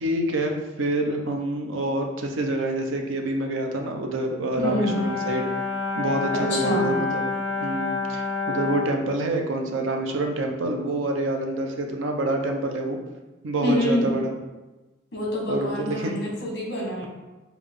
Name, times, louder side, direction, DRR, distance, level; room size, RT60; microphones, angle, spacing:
voice 1, 0.0-5.4 6.0-7.2 7.6-13.0 13.4-14.3 15.5-16.1, right 1 dB, 90° right, 3 dB, 0.6 m, -27 dB
Brass instrument, 4.6-9.0, left 4 dB, 75° left, 0.6 m, -28 dB
voice 2, 4.6-5.1 6.3-6.9 13.6-14.1 15.1-17.1, left 1 dB, 55° left, -2 dB, 1.2 m, -26 dB
5.2 x 2.3 x 3.5 m, 1.1 s
head